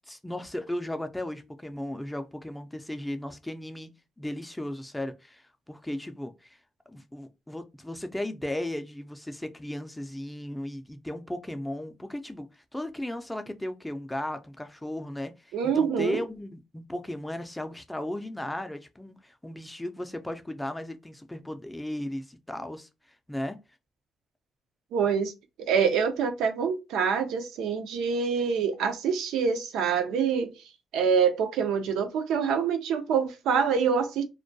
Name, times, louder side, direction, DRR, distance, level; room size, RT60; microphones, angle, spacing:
voice 1, 0.1-3.9 4.2-6.6 6.9-22.9 23.3-23.6, left 1 dB, 10° left, 0.4 m, -36 dB
voice 2, 15.5-16.2 24.9-25.3 25.6-30.5 30.9-34.2, right 6 dB, 85° right, 0.4 m, -26 dB
2.2 x 2.2 x 2.6 m
cardioid pair, 90°, 0 cm